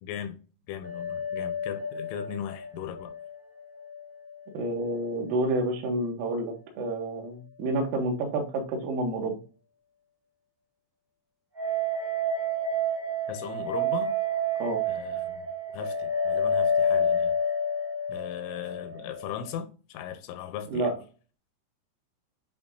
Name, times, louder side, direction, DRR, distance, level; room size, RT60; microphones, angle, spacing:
voice 1, 0.0-0.4 0.7-3.1 13.3-14.2 14.9-15.5 15.7-17.4 18.1-20.9, left 9 dB, 85° left, 3.2 m, -38 dB
sound 1, 0.8-4.0 4.3-4.4 11.5-19.5, equal, 35° right, 0.7 m, -29 dB
voice 2, 4.5-9.4 14.6-14.8 20.7-21.0, right 2 dB, 80° right, 4.2 m, -29 dB
10.5 x 3.6 x 2.6 m
omnidirectional pair, 5.8 m